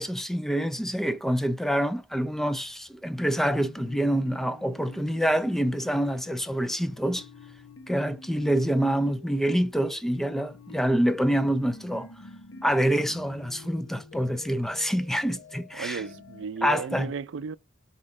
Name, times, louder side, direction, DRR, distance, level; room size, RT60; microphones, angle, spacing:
voice 1, 0.0-7.3 7.9-12.1 12.6-16.0 16.6-17.1, equal, ahead, 0.4 m, -26 dB
sound 1, 3.4-16.5, left 2 dB, 80° left, 1.1 m, -48 dB
voice 2, 15.8-17.6, right 5 dB, 75° right, 0.4 m, -34 dB
7.7 x 4.3 x 3.7 m
head